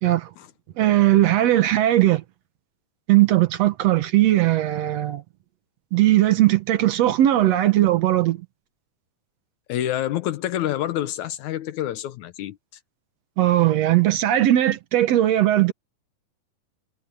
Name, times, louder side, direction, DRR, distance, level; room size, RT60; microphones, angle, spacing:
voice 1, 0.8-2.2 3.1-5.2 5.9-8.4 13.4-15.7, right 14 dB, 65° right, 1.7 m, -18 dB
voice 2, 9.7-12.6, left 12 dB, 70° left, 1.9 m, -27 dB
omnidirectional pair, 4.1 m